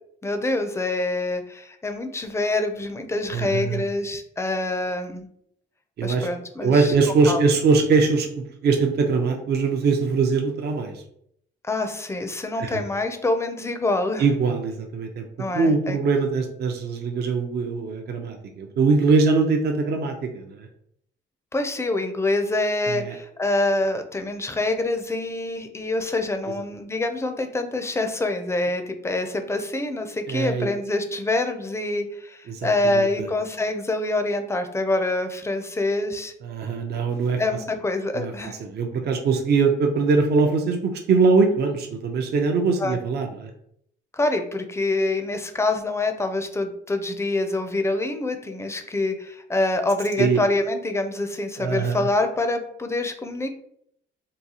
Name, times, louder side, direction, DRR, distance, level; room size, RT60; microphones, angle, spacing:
voice 1, 0.2-5.3 6.0-6.9 7.3-7.4 11.6-14.2 15.4-16.0 21.5-36.3 37.4-38.6 42.8-43.0 44.1-53.5, left 2 dB, 15° left, 6 dB, 0.4 m, -26 dB
voice 2, 3.3-3.8 6.0-6.3 6.6-8.3 8.6-11.0 12.6-12.8 14.2-15.3 15.5-20.7 22.9-23.1 30.3-30.7 32.5-33.3 36.4-37.4 38.1-43.5 50.2-50.4 51.6-52.1, right 4 dB, 55° right, 4 dB, 0.5 m, -22 dB
3.9 x 2.3 x 2.8 m, 0.71 s
cardioid pair, 90°, 20 cm